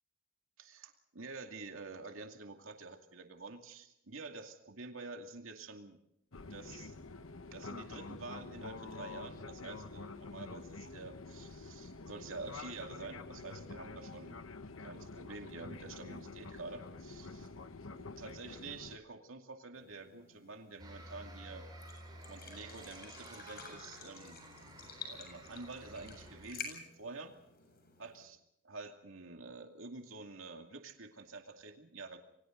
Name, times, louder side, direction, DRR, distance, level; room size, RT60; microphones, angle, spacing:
voice 1, 0.6-6.0 6.5-6.9 7.5-14.4 14.8-17.5 17.9-21.6 22.3-24.4 25.1-27.3 28.0-28.4 28.6-32.2, right 3 dB, 75° right, 4 dB, 2.4 m, -48 dB
Fixed-wing aircraft airplane, 6.3-19.0, left 3 dB, 75° left, 1.1 m, -47 dB
sound 1, 19.7-28.2, left 5 dB, 50° left, 7.5 m, -51 dB
sound 2, 20.8-26.5, right 1 dB, 20° right, 7.9 m, -52 dB
30.0 x 24.0 x 3.9 m, 0.79 s
head